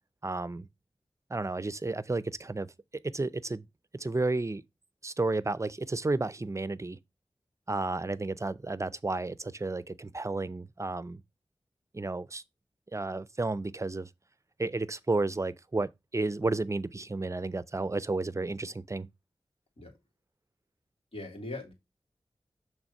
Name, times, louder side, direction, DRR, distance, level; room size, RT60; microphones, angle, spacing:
voice 1, 0.2-0.7 1.3-2.7 3.0-3.7 3.9-4.6 5.0-7.0 7.7-11.2 11.9-12.4 12.9-14.1 14.6-19.1, right 2 dB, 30° right, 0.5 m, -32 dB
voice 2, 21.1-21.7, left 2 dB, 70° left, 2.9 m, -40 dB
6.2 x 3.6 x 5.3 m
cardioid pair, 40°, 10 cm